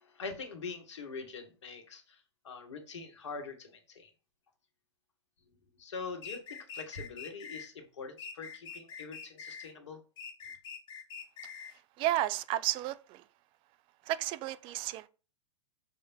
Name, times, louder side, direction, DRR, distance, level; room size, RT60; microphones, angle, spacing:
voice 1, 0.0-4.1 5.8-10.0, left 4 dB, 75° left, 1.5 m, -44 dB
sound 1, 6.2-7.7 8.2-9.7 10.2-11.8, left 6 dB, 30° left, 1.1 m, -45 dB
voice 2, 12.0-13.2 14.0-15.1, right 14 dB, 35° right, 0.4 m, -32 dB
6.5 x 3.5 x 4.3 m
hypercardioid pair, 105°, 15 cm